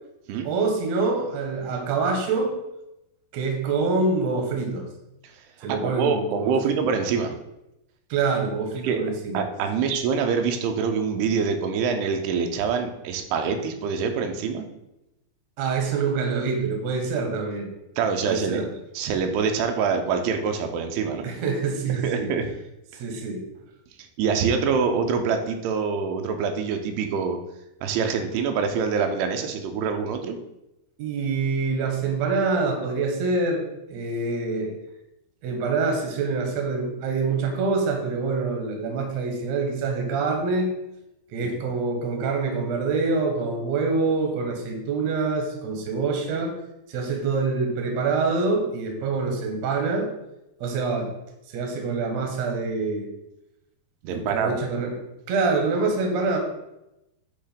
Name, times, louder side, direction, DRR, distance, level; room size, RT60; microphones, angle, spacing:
voice 1, 0.4-2.5 3.3-4.9 5.6-6.5 8.1-9.4 15.6-17.7 18.2-18.7 21.2-22.3 23.0-23.4 31.0-34.8 35.4-40.7 41.3-46.5 46.9-50.1 50.6-51.1 51.5-53.1 54.0-54.9 55.3-56.4, right 4 dB, 65° right, 2 dB, 1.8 m, -25 dB
voice 2, 5.7-7.3 8.8-9.0 9.3-14.7 18.0-18.6 18.9-21.3 21.9-22.5 22.9-23.0 24.2-27.4 27.8-30.4 41.4-41.5 54.1-54.6, right 6 dB, 90° right, 5 dB, 2.8 m, -25 dB
7.9 x 3.1 x 5.0 m, 0.89 s
omnidirectional pair, 4.7 m